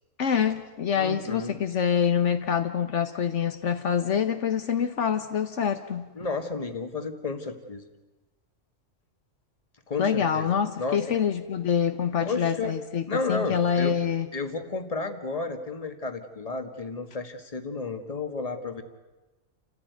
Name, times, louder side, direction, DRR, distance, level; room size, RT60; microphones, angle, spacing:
voice 1, 0.2-6.1 10.0-13.0 13.3-14.3, left 8 dB, 75° left, 8 dB, 1.3 m, -26 dB
voice 2, 0.9-1.6 6.1-7.8 9.9-10.5 10.8-11.0 12.2-12.8 13.1-13.9 14.3-18.8, left 3 dB, 30° left, 7 dB, 1.7 m, -32 dB
28.5 x 15.0 x 9.4 m, 1.1 s
omnidirectional pair, 1.3 m